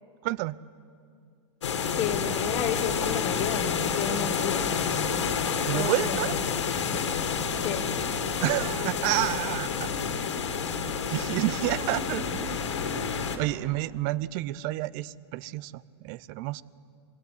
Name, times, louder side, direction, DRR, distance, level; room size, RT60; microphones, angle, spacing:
voice 1, 0.2-0.6 5.7-6.3 8.4-9.9 11.1-12.6 13.4-16.6, right 17 dB, 50° right, 21 dB, 0.6 m, -29 dB
sound 1, 1.6-13.4, left 6 dB, 90° left, 2.2 m, -29 dB
voice 2, 2.0-4.6 5.7-6.2 7.6-7.8, left 9 dB, 35° left, 0 dB, 1.4 m, -31 dB
23.0 x 16.5 x 9.9 m, 2.4 s
hypercardioid pair, 120°, 15 cm